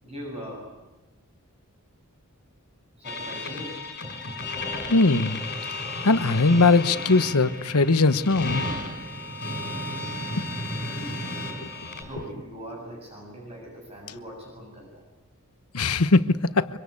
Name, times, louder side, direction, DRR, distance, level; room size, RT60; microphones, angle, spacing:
voice 1, 0.0-0.7 3.0-3.8 10.8-11.5 12.0-15.0, equal, 30° right, 7.3 m, -40 dB
sound 1, 3.0-12.0, left 2 dB, 45° left, 6.2 m, -33 dB
voice 2, 4.9-5.4 6.0-8.7 15.7-16.7, left 3 dB, 90° left, 1.1 m, -20 dB
24.5 x 24.5 x 8.5 m
head